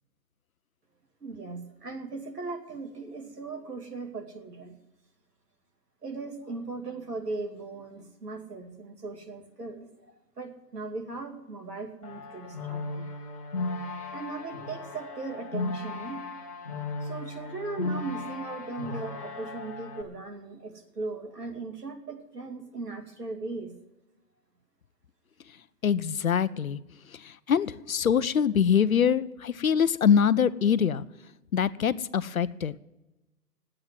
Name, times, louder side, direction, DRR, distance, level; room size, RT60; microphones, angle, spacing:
voice 1, 1.2-4.8 6.0-10.1 10.4-13.1 14.1-16.2 17.0-23.7, right 3 dB, 75° right, 4 dB, 2.5 m, -38 dB
sound 1, 12.0-20.0, left 3 dB, 20° left, 1.2 m, -36 dB
voice 2, 25.8-26.8 27.5-31.0 31.5-32.7, left 7 dB, 60° left, 16 dB, 0.6 m, -24 dB
11.0 x 8.7 x 9.6 m, 1.0 s
hypercardioid pair, 170°, 48 cm